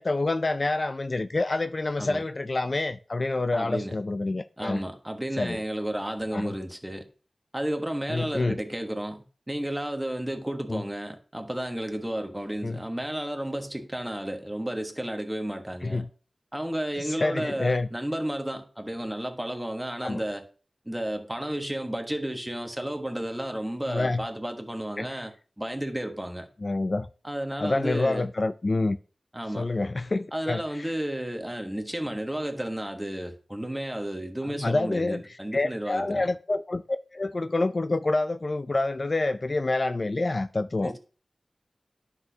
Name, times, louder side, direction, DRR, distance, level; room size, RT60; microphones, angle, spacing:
voice 1, 0.0-4.8 5.4-5.6 6.3-6.5 8.1-8.6 10.7-10.8 12.6-12.8 15.8-16.1 17.0-17.9 20.0-20.2 23.9-24.2 25.0-25.1 26.6-27.1 27.6-29.0 29.6-30.9 34.5-35.2 35.5-36.8 37.1-40.9, left 2 dB, 50° left, 0.4 m, -27 dB
voice 2, 3.5-4.0 4.6-7.1 7.5-16.0 16.5-20.5 20.8-26.5 27.2-28.3 29.3-29.7 30.3-36.2 40.8-41.0, right 1 dB, 10° right, 1.3 m, -32 dB
10.5 x 6.0 x 2.7 m
wide cardioid pair, 60°, 0 cm